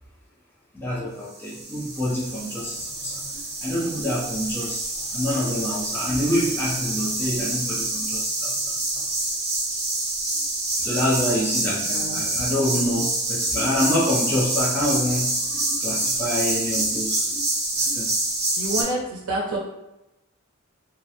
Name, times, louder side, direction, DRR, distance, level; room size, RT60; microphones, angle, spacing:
voice 1, 0.7-4.8 5.1-8.7 10.4-17.5 17.8-18.1, left 1 dB, 10° left, -7 dB, 0.5 m, -27 dB
sound 1, 1.3-18.8, right 2 dB, 30° right, 0.8 m, -27 dB
voice 2, 11.8-12.4 18.6-19.6, right 1 dB, 70° right, -4 dB, 0.5 m, -28 dB
2.3 x 2.1 x 2.8 m, 0.93 s
head